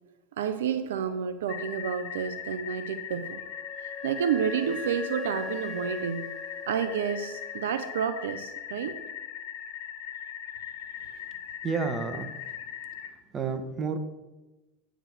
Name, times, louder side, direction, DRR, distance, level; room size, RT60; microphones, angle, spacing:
voice 1, 0.4-3.4 3.8-6.3 6.7-9.0, right 8 dB, 75° right, 10 dB, 0.6 m, -30 dB
sound 1, 1.5-13.1, left 9 dB, 60° left, 1.3 m, -40 dB
Wind instrument woodwind instrument, 3.2-7.9, left 5 dB, ahead, 1.1 m, -40 dB
voice 2, 11.6-12.3 13.3-14.0, right 5 dB, 25° right, 8 dB, 1.1 m, -30 dB
8.8 x 5.1 x 6.3 m, 1.1 s
hypercardioid pair, 100°, 0 cm